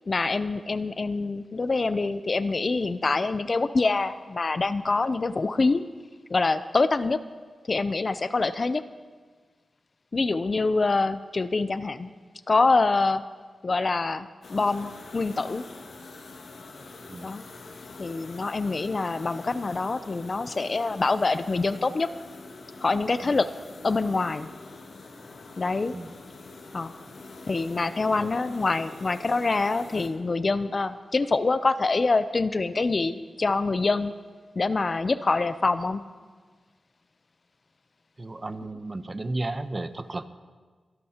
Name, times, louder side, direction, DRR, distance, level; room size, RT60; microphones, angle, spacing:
voice 1, 0.1-5.8 6.3-7.2 7.7-8.8 10.1-12.1 12.5-13.2 13.6-15.6 17.2-17.4 18.0-22.1 22.8-23.5 23.8-24.5 25.6-25.9 26.7-26.9 27.5-34.1 34.6-36.0, left 3 dB, 45° left, 13 dB, 0.5 m, -25 dB
sound 1, 14.4-30.1, left 3 dB, 80° left, 1.7 m, -45 dB
voice 2, 38.2-40.3, right 2 dB, 30° right, 10 dB, 0.7 m, -33 dB
23.5 x 12.0 x 2.9 m, 1.5 s
cardioid pair, 75°, 0 cm